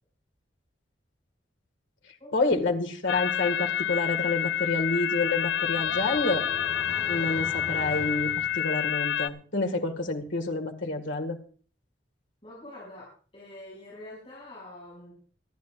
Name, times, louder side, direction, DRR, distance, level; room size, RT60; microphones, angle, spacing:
voice 1, 2.3-6.5 7.1-11.4, left 2 dB, 85° left, 5 dB, 1.9 m, -28 dB
sound 1, 3.1-9.3, left 10 dB, 70° left, 0.5 m, -28 dB
sound 2, 4.6-9.2, left 1 dB, 15° left, 2.8 m, -43 dB
voice 2, 12.4-15.1, left 1 dB, 30° left, -6 dB, 6.0 m, -45 dB
26.0 x 11.0 x 2.5 m, 0.42 s
head